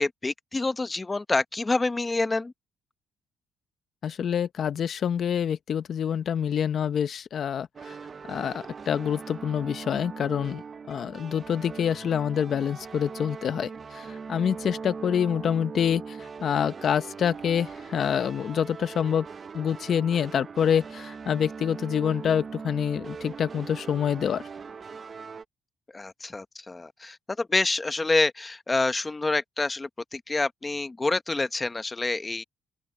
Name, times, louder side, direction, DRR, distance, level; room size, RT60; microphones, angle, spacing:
voice 1, 0.0-2.5 25.9-32.4, left 3 dB, 20° left, 1.2 m, -27 dB
voice 2, 4.0-8.0 8.3-10.6 10.9-19.3 19.5-24.4, left 8 dB, 60° left, 0.8 m, -27 dB
sound 1, 7.7-25.4, right 5 dB, 40° right, 0.9 m, -40 dB
open air
cardioid pair, 90°, 0 cm